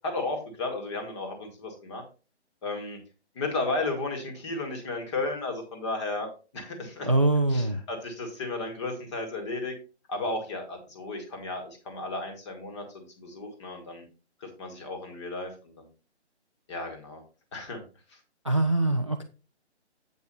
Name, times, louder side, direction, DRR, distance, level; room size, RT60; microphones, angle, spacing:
voice 1, 0.0-2.0 2.6-3.0 3.4-7.1 7.5-9.7 10.1-14.0 14.4-15.9 16.7-17.2 17.5-17.8, left 2 dB, 25° left, 4 dB, 1.9 m, -34 dB
voice 2, 7.1-7.8 18.4-19.2, right 2 dB, 30° right, 7 dB, 0.4 m, -23 dB
7.9 x 5.4 x 4.1 m, 0.32 s
figure-of-eight pair, 155°, 35 cm